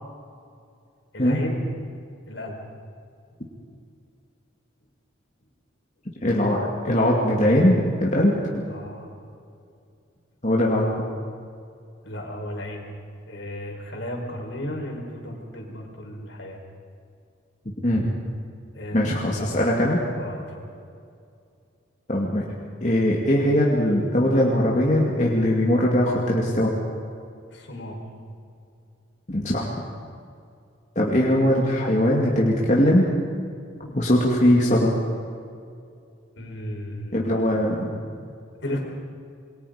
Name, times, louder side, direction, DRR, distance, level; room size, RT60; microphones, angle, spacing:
voice 1, 1.1-1.6 2.3-2.6 8.7-9.2 12.0-12.9 13.3-16.6 18.7-19.7 20.2-20.7 27.5-28.0 33.8-34.1 36.3-37.3 38.6-38.8, left 1 dB, 65° left, 1 dB, 5.0 m, -34 dB
voice 2, 6.2-8.4 10.4-10.9 17.8-18.1 18.9-20.0 22.1-22.4 22.8-26.7 29.3-29.7 31.0-33.1 34.0-34.9 37.1-37.9, left 1 dB, 35° left, -3 dB, 2.4 m, -20 dB
27.0 x 23.0 x 5.2 m, 2.4 s
head